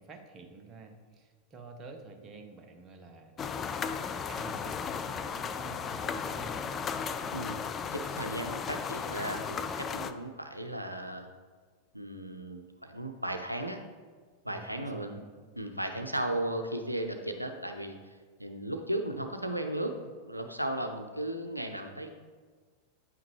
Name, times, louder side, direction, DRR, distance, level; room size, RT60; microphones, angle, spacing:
voice 1, 0.0-3.5 4.0-6.8 14.5-15.3, right 4 dB, 25° right, 4 dB, 1.0 m, -49 dB
sound 1, 3.4-10.1, left 6 dB, 25° left, 0.4 m, -35 dB
voice 2, 7.9-11.3 11.9-13.8 14.4-15.2 15.6-22.1, right 1 dB, 90° right, 5 dB, 0.5 m, -36 dB
9.1 x 5.7 x 3.2 m, 1.5 s
figure-of-eight pair, 90°, 0 cm